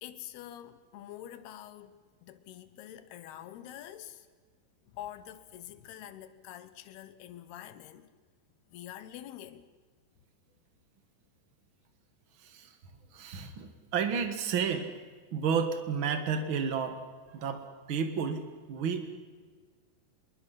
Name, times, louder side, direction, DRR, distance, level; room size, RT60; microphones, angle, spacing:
voice 1, 0.0-4.3 4.9-8.1 8.7-9.7, left 12 dB, 75° left, 2.8 m, -46 dB
voice 2, 12.4-12.8 13.1-14.9 15.3-17.0 17.3-19.1, right 6 dB, 80° right, 1.1 m, -32 dB
26.5 x 22.0 x 5.8 m
omnidirectional pair, 4.9 m